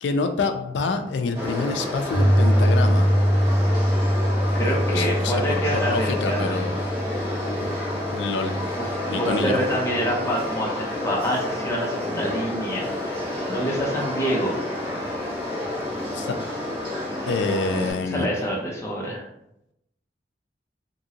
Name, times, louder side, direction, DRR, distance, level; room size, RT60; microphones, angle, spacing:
voice 1, 0.0-3.1 4.6-6.8 8.1-8.6 9.1-9.6 16.1-16.4 17.3-18.3, left 4 dB, 85° left, 7 dB, 0.4 m, -27 dB
sound 1, 1.3-17.9, left 1 dB, 35° right, 1.4 m, -30 dB
Piano, 2.1-10.2, equal, 70° left, 0.8 m, -23 dB
voice 2, 4.5-6.6 8.7-14.6 17.8-19.3, equal, 15° left, -4 dB, 0.5 m, -27 dB
2.9 x 2.6 x 2.7 m, 0.83 s
head